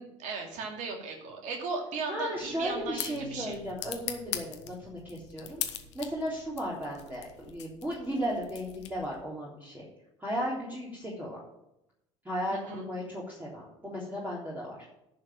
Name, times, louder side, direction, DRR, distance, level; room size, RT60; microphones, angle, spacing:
voice 1, 0.0-3.6 12.5-12.9, right 4 dB, 55° right, 2 dB, 2.7 m, -37 dB
voice 2, 2.1-5.6 5.9-9.8 10.2-11.4 12.2-14.9, equal, 10° right, -5 dB, 3.5 m, -35 dB
sound 1, 2.4-9.3, left 10 dB, 75° left, 1.1 m, -41 dB
10.5 x 5.8 x 7.4 m, 0.85 s
figure-of-eight pair, 60°, 15 cm